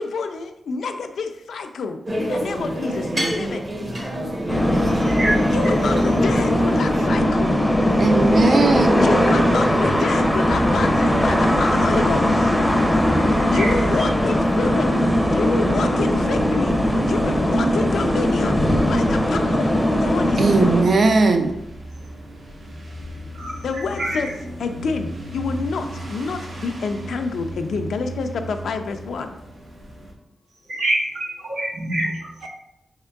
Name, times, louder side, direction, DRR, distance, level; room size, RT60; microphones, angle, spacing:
voice 1, 0.0-3.6 5.5-7.5 8.7-12.5 13.3-20.7 23.6-24.3 24.6-29.3, left 4 dB, 90° left, 7 dB, 0.3 m, -28 dB
sound 1, 2.1-7.1, equal, 35° right, 0.8 m, -27 dB
sound 2, 4.5-20.8, equal, 5° left, 0.5 m, -19 dB
voice 2, 5.0-5.5 13.5-13.7 23.3-24.2 30.7-32.5, right 1 dB, 90° right, -4 dB, 1.2 m, -26 dB
voice 3, 8.0-9.2 20.4-21.5, right 3 dB, 55° right, 6 dB, 0.4 m, -18 dB
sound 3, 16.7-30.1, right 1 dB, 70° right, 1.0 m, -37 dB
4.4 x 3.5 x 2.3 m, 0.84 s
wide cardioid pair, 100°, 0 cm